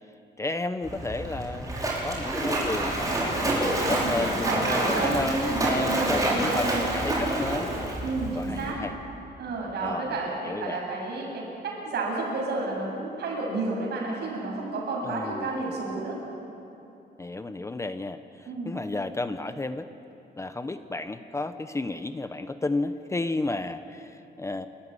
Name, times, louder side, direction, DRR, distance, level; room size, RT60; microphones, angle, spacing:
voice 1, 0.4-7.7 8.3-8.9 9.8-10.2 10.4-10.8 15.0-15.6 17.2-19.9 20.4-24.7, left 2 dB, 15° left, 10 dB, 0.8 m, -32 dB
Splash splatter, 0.8-8.7, right 1 dB, 20° right, 5.4 m, -28 dB
voice 2, 4.0-6.9 8.0-8.8 9.4-16.2 18.4-18.7, right 3 dB, 70° right, -2 dB, 8.0 m, -31 dB
28.5 x 14.5 x 9.8 m, 2.8 s
cardioid pair, 140°, 18 cm